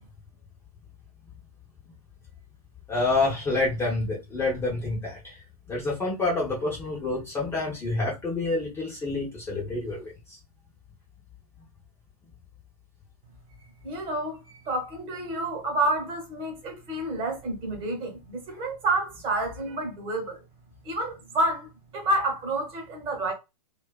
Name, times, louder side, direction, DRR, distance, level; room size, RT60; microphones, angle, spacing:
voice 1, 2.9-5.4 5.7-10.4, left 3 dB, 15° left, 0.7 m, -28 dB
voice 2, 13.8-20.4 20.8-23.3, right 2 dB, 25° right, 1.0 m, -29 dB
2.5 x 2.3 x 2.2 m
hypercardioid pair, 125°, 20 cm